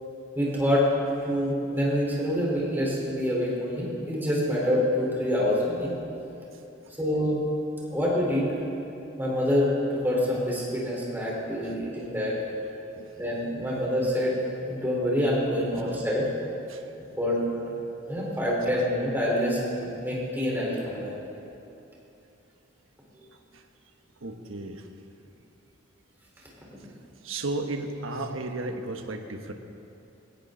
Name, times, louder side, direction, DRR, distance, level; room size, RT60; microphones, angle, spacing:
voice 1, 0.4-0.9 1.2-5.9 7.0-7.4 7.9-8.6 9.2-12.3 13.2-14.3 14.6-16.3 17.2-17.7 18.1-21.1 23.2-23.3 26.7-26.9, equal, 10° right, -5 dB, 4.2 m, -26 dB
voice 2, 23.3-23.6 24.2-24.9 27.2-29.5, right 2 dB, 80° right, 5 dB, 1.3 m, -34 dB
20.0 x 17.5 x 4.0 m, 2.8 s
head